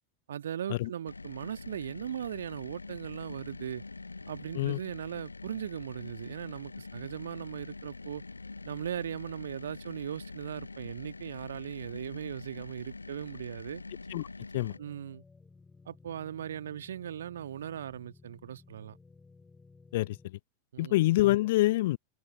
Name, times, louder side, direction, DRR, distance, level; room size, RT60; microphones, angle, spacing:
voice 1, 0.3-3.8 4.3-8.2 8.6-13.8 14.8-15.2 15.9-19.0 20.7-21.0, right 9 dB, 65° right, 1.8 m, -39 dB
sound 1, 1.1-14.8, left 3 dB, 80° left, 0.8 m, -45 dB
sound 2, 14.7-20.3, left 4 dB, 10° left, 4.0 m, -57 dB
voice 2, 19.9-20.4 20.8-22.0, left 17 dB, 55° left, 0.4 m, -26 dB
open air
figure-of-eight pair, 90°, 0 cm